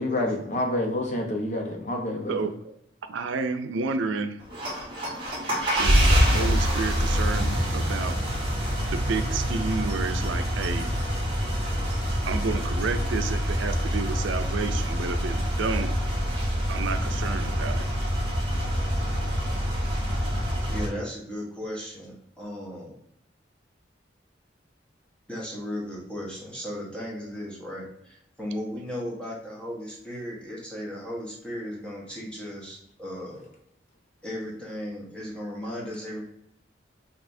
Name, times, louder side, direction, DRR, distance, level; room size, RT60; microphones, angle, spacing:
voice 1, 0.0-2.4 29.0-29.1, left 1 dB, 40° left, 1 dB, 0.7 m, -28 dB
voice 2, 2.3-2.8 3.1-4.4 5.8-8.2 8.9-10.9 12.3-15.9 16.7-17.9, right 4 dB, 90° right, 8 dB, 0.4 m, -31 dB
sound 1, 4.4-20.9, equal, 30° right, 1.3 m, -26 dB
voice 3, 20.7-23.0 25.3-33.5 34.2-36.2, equal, 5° left, -5 dB, 1.2 m, -36 dB
5.3 x 2.9 x 2.6 m, 0.73 s
head